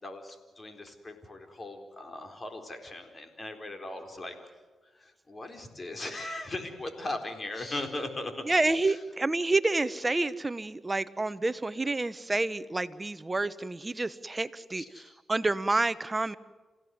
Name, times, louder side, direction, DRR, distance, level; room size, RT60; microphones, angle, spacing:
voice 1, 0.0-4.3 5.0-9.0 14.7-15.2, left 2 dB, 35° left, 6 dB, 4.3 m, -39 dB
voice 2, 8.5-14.8 15.3-16.3, right 2 dB, 25° right, 15 dB, 1.0 m, -28 dB
28.0 x 16.5 x 9.5 m, 1.3 s
cardioid pair, 70°, 0 cm